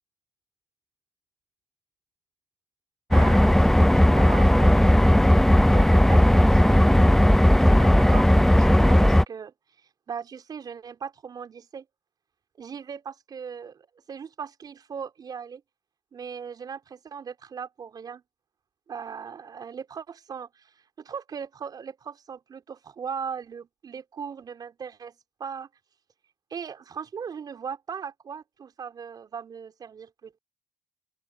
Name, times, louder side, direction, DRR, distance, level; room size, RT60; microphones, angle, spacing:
sound 1, 3.1-9.2, left 1 dB, 5° left, 0.5 m, -17 dB
voice 1, 3.1-7.3 7.7-9.5 10.1-11.8 12.6-15.6 16.1-18.2 18.9-20.7 21.0-25.1 25.4-25.7 26.5-30.4, right 6 dB, 50° right, 4.7 m, -38 dB
open air
hypercardioid pair, 55°, 9 cm